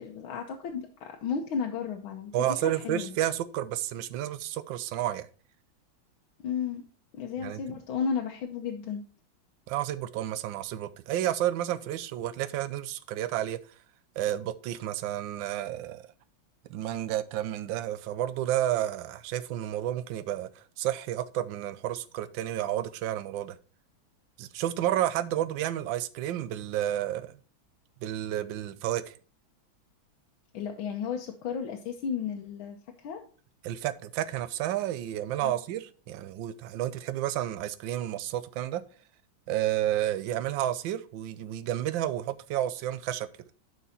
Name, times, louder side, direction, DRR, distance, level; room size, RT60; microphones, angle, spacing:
voice 1, 0.0-3.1 6.4-6.8 7.1-9.0 30.5-33.2 35.4-35.6, left 6 dB, 85° left, 1.8 m, -33 dB
voice 2, 2.3-5.3 7.4-7.8 9.7-13.6 14.2-16.0 16.7-23.6 24.4-27.3 28.0-29.1 33.6-38.8 39.5-43.3, right 12 dB, 75° right, 1.3 m, -31 dB
11.0 x 4.7 x 4.2 m
omnidirectional pair, 2.2 m